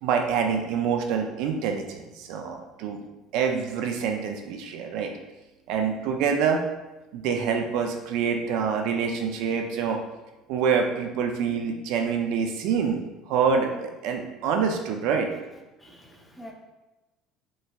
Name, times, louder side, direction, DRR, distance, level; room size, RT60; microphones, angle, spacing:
voice 1, 0.0-3.0 3.3-5.1 5.7-6.6 7.1-10.0 10.5-15.3, right 6 dB, 70° right, 4 dB, 0.3 m, -26 dB
voice 2, 15.3-16.5, equal, 10° left, 0 dB, 0.7 m, -48 dB
3.9 x 2.2 x 2.3 m, 1.1 s
supercardioid pair, 80°, 0 cm